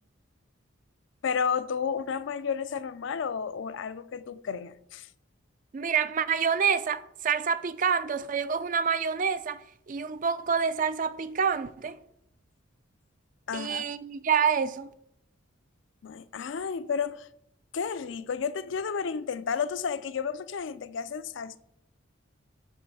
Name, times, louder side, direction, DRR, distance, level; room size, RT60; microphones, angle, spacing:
voice 1, 1.2-5.1 13.5-13.9 16.0-17.3 17.7-21.6, left 6 dB, 60° left, 0.4 m, -32 dB
voice 2, 5.7-9.6 9.9-12.0 13.5-14.9, right 6 dB, 40° right, 0.4 m, -27 dB
8.5 x 3.1 x 6.1 m
head